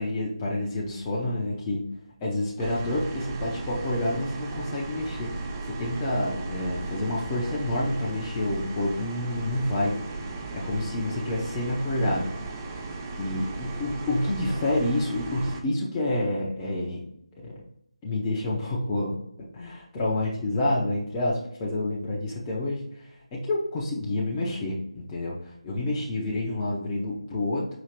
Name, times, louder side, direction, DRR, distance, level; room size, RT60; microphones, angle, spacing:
voice 1, 0.0-1.8 2.2-5.3 5.7-10.2 10.5-12.3 13.2-17.0 17.4-17.6 18.0-19.2 19.5-22.8 23.3-25.4 25.6-27.7, left 1 dB, 15° left, -5 dB, 0.7 m, -28 dB
sound 1, 2.6-15.6, right 3 dB, 20° right, 0.4 m, -36 dB
5.0 x 2.9 x 2.8 m, 0.74 s
figure-of-eight pair, 155°, 3 cm